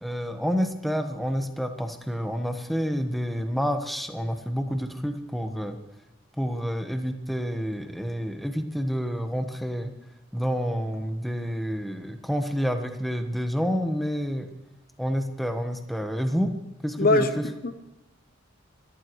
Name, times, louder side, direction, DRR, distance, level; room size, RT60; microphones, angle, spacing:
voice 1, 0.0-5.8 6.4-9.9 10.3-14.5 15.0-16.5 16.8-17.3, equal, ahead, 5 dB, 1.2 m, -28 dB
voice 2, 17.0-17.8, left 2 dB, 45° left, 9 dB, 0.9 m, -23 dB
26.0 x 14.0 x 3.2 m, 0.96 s
head